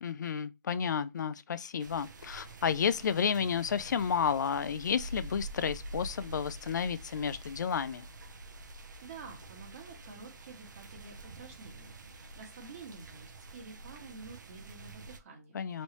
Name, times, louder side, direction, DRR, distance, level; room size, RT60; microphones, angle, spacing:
voice 1, 0.0-8.1 15.5-15.8, left 7 dB, 75° left, 0.4 m, -31 dB
sound 1, 1.8-15.2, right 2 dB, 80° right, 0.6 m, -47 dB
voice 2, 9.0-15.8, right 4 dB, 50° right, 1.4 m, -50 dB
3.1 x 2.7 x 3.0 m
hypercardioid pair, 145°, 10 cm